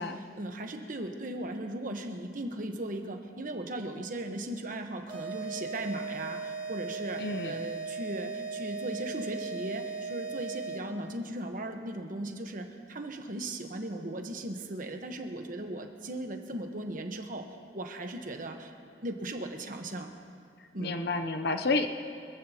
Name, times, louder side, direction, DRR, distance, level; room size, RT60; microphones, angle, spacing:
voice 1, 0.0-20.1 20.7-21.0, right 1 dB, 50° right, 4 dB, 1.2 m, -37 dB
sound 1, 5.1-11.0, right 4 dB, 30° right, 4.0 m, -38 dB
voice 2, 7.2-7.6 20.8-21.9, left 3 dB, 65° left, 7 dB, 0.7 m, -30 dB
25.5 x 15.0 x 3.0 m, 2.3 s
head